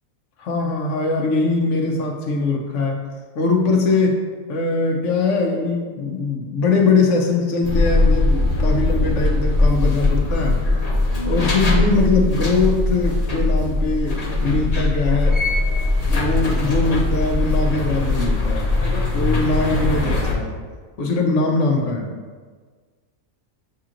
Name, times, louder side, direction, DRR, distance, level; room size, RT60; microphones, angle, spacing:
voice 1, 0.4-3.0 3.3-4.2 4.5-10.6 11.2-15.4 16.1-18.7 19.1-20.5 21.0-22.1, left 3 dB, 65° left, 1 dB, 0.9 m, -21 dB
sound 1, 7.6-20.3, left 2 dB, 35° left, 0.6 m, -20 dB
7.2 x 2.9 x 2.5 m, 1.5 s
omnidirectional pair, 1.5 m